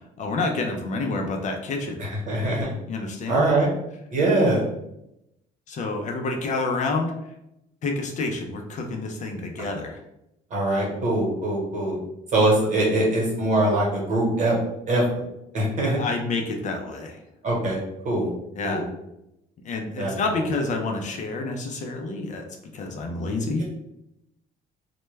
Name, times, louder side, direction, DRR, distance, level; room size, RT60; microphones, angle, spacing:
voice 1, 0.2-2.0 2.9-3.4 5.7-7.1 7.8-10.0 15.9-17.2 18.6-18.9 19.6-22.5 22.7-23.6, left 3 dB, 45° left, 3 dB, 0.4 m, -28 dB
voice 2, 2.0-2.7 3.3-3.7 4.1-4.6 10.5-12.0 12.3-14.6 14.9-15.0 15.5-16.0 17.4-17.8 18.0-18.3 18.6-18.9 20.0-20.4, right 2 dB, 45° right, -2 dB, 1.1 m, -22 dB
2.2 x 2.1 x 3.2 m, 0.84 s
cardioid pair, 110°, 17 cm